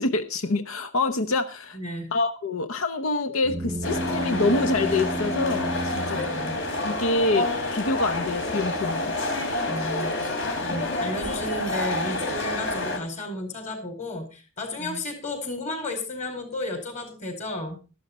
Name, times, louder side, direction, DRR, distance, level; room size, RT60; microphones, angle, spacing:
voice 1, 0.0-1.8 2.1-6.2 6.8-9.2 10.7-10.8 14.8-15.0, left 3 dB, 90° left, 0.9 m, -26 dB
voice 2, 1.7-2.1 6.1-6.6 9.7-10.3 10.6-17.8, left 1 dB, 35° left, 4.6 m, -33 dB
sound 1, 3.4-7.1, right 1 dB, 30° right, 0.6 m, -32 dB
sound 2, 3.8-13.0, left 2 dB, 60° left, 3.8 m, -28 dB
13.5 x 12.0 x 4.2 m
head